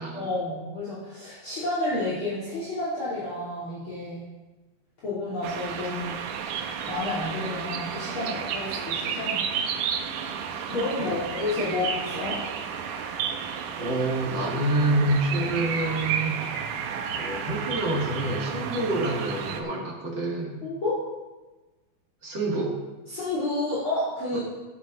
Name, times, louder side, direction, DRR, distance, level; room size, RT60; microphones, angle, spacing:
voice 1, 0.1-4.3 5.0-6.2 6.5-9.4 10.7-12.4 20.6-21.0 23.1-24.4, left 2 dB, 40° left, -10 dB, 3.4 m, -30 dB
sound 1, 5.4-19.6, right 7 dB, 90° right, 2.4 m, -32 dB
voice 2, 13.8-16.5 17.1-20.6 22.2-22.8 24.3-24.4, right 2 dB, 45° right, -2 dB, 2.1 m, -27 dB
15.5 x 7.3 x 3.8 m, 1.2 s
omnidirectional pair, 3.5 m